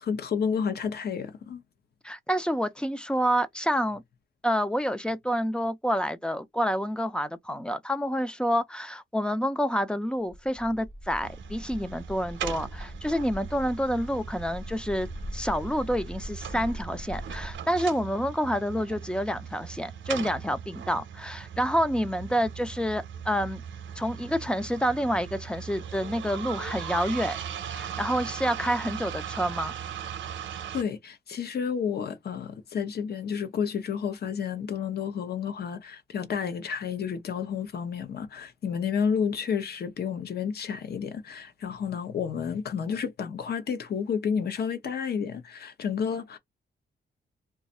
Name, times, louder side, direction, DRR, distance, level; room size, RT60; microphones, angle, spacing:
voice 1, 0.0-1.6 30.7-46.4, left 7 dB, 55° left, 0.7 m, -31 dB
voice 2, 2.0-4.0 4.4-23.6 24.0-27.4 27.7-29.7, equal, 5° left, 0.4 m, -28 dB
Bird, 10.3-17.6, equal, 35° left, 1.4 m, -41 dB
sound 1, 11.2-30.8, right 8 dB, 85° right, 0.6 m, -39 dB
2.5 x 2.4 x 4.1 m
wide cardioid pair, 170°, 19 cm